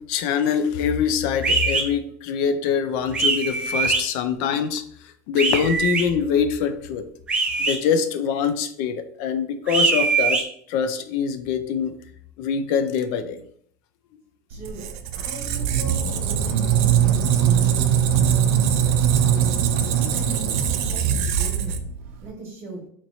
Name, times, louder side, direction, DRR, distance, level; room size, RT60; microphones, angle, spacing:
voice 1, 0.0-4.8 5.3-7.1 7.6-10.4 10.7-11.9 12.4-13.4 19.8-19.9, left 7 dB, 55° left, 10 dB, 0.4 m, -24 dB
sound 1, 1.4-1.8 3.1-4.0 5.4-6.0 7.3-7.8 9.7-10.4, right 4 dB, 15° right, 0.5 m, -22 dB
voice 2, 14.5-14.8 15.1-18.9 19.3-19.5 19.9-21.8 22.2-22.8, right 3 dB, 30° right, -1 dB, 1.3 m, -38 dB
Squeak, 14.5-22.3, right 8 dB, 65° right, 0.4 m, -21 dB
3.1 x 2.9 x 4.0 m, 0.62 s
cardioid pair, 175°, 8 cm